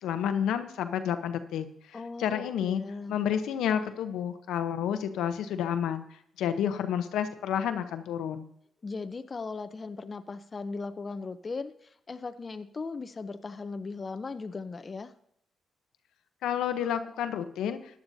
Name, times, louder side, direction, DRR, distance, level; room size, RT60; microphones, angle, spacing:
voice 1, 0.0-2.8 3.1-6.0 6.4-8.5 16.4-17.8, left 9 dB, 85° left, 8 dB, 0.8 m, -30 dB
voice 2, 1.9-3.2 8.8-15.1, left 4 dB, 40° left, 9 dB, 0.7 m, -38 dB
14.5 x 10.5 x 2.7 m, 0.71 s
cardioid pair, 65°, 0 cm